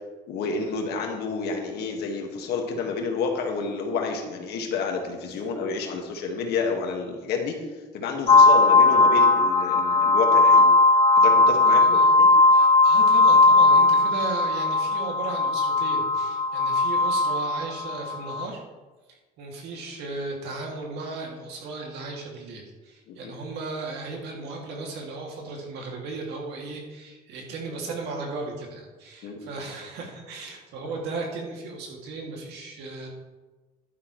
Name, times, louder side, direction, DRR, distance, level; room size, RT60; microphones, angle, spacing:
voice 1, 0.3-7.6 7.9-10.7 11.2-12.3 23.1-23.3 29.2-29.4, left 4 dB, 75° left, 2 dB, 1.7 m, -29 dB
sound 1, 8.3-18.4, left 3 dB, 30° left, 0.6 m, -18 dB
voice 2, 11.7-12.1 12.5-18.6 19.1-33.1, right 3 dB, 80° right, 0 dB, 2.4 m, -36 dB
11.0 x 9.8 x 3.1 m, 1.2 s
cardioid pair, 110°, 17 cm